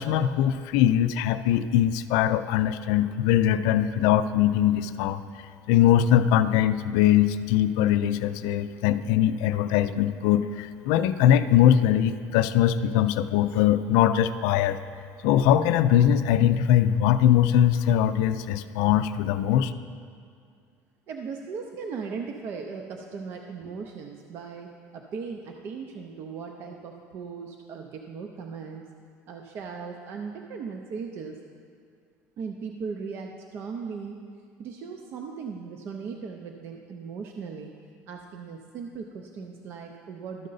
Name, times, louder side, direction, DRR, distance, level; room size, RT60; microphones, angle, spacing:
voice 1, 0.0-5.2 5.7-14.8 15.2-19.7, left 11 dB, 80° left, 12 dB, 0.4 m, -21 dB
voice 2, 21.1-28.8 29.3-31.4 32.4-34.2 34.6-37.7 38.1-40.5, right 5 dB, 45° right, 3 dB, 0.5 m, -38 dB
12.5 x 6.4 x 3.9 m, 2.2 s
cardioid pair, 165°, 6 cm